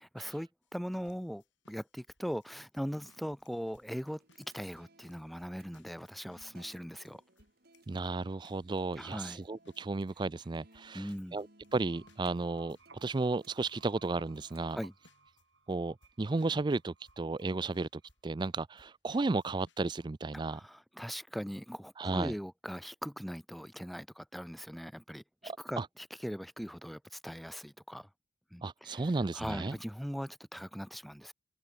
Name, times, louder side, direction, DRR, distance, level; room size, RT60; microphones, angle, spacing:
voice 1, 0.1-7.2 9.0-9.4 10.9-11.4 14.7-14.9 20.3-28.1 28.5-29.0 29.3-31.3, equal, ahead, 1.4 m, -40 dB
sound 1, 0.6-14.8 15.0-15.4 15.7-15.8 16.0-16.8 17.1-18.5 18.8-19.9, left 2 dB, 80° left, 7.3 m, -66 dB
sound 2, 4.2-14.7, right 2 dB, 55° right, 5.6 m, -64 dB
voice 2, 7.9-14.8 15.7-20.6 22.0-22.3 25.4-25.9 28.6-29.8, right 3 dB, 25° right, 0.4 m, -34 dB
sound 3, 11.6-18.4, right 4 dB, 85° right, 5.6 m, -62 dB
head